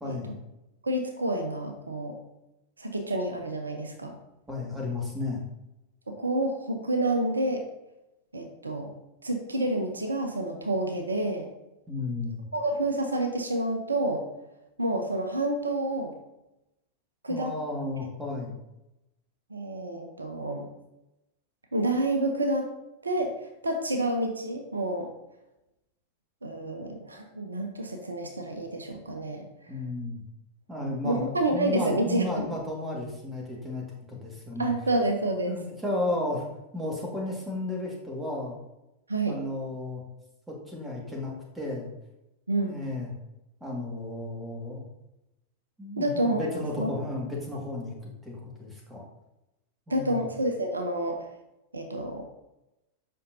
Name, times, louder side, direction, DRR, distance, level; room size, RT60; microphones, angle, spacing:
voice 1, 0.0-0.4 4.5-5.4 11.9-12.4 17.3-18.6 29.7-30.2 30.7-34.7 35.5-36.4 36.7-38.6 39.3-40.0 40.5-41.9 42.5-43.1 43.6-44.9 45.8-49.0 49.9-50.3, left 2 dB, 10° right, -2 dB, 1.9 m, -33 dB
voice 2, 0.8-2.2 2.8-4.2 6.1-7.6 8.3-8.9 9.2-11.5 12.5-14.2 14.8-16.1 17.2-17.5 19.5-20.7 21.7-22.7 23.0-25.1 26.4-29.5 30.8-32.5 34.6-35.6 39.1-39.4 42.5-42.8 46.0-46.5 46.8-46.9 49.9-51.3 51.7-52.2, right 1 dB, 80° right, 5 dB, 0.7 m, -29 dB
7.5 x 5.5 x 2.7 m, 0.91 s
figure-of-eight pair, 90°, 0 cm